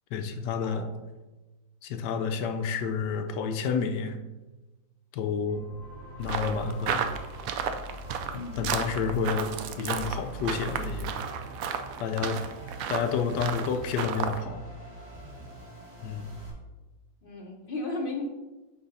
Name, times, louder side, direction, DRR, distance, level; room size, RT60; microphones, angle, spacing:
voice 1, 0.1-0.9 1.8-4.2 5.1-5.6 6.2-7.0 8.3-11.2 12.0-12.4 12.9-14.6 16.0-16.3, left 6 dB, 70° left, 7 dB, 1.2 m, -30 dB
sound 1, 5.5-16.5, right 2 dB, 45° right, 3.0 m, -43 dB
sound 2, 6.2-14.4, right 7 dB, 75° right, 0.8 m, -34 dB
voice 2, 17.2-18.2, left 3 dB, 40° left, 1 dB, 0.9 m, -35 dB
6.4 x 3.9 x 5.4 m, 1.1 s
omnidirectional pair, 2.0 m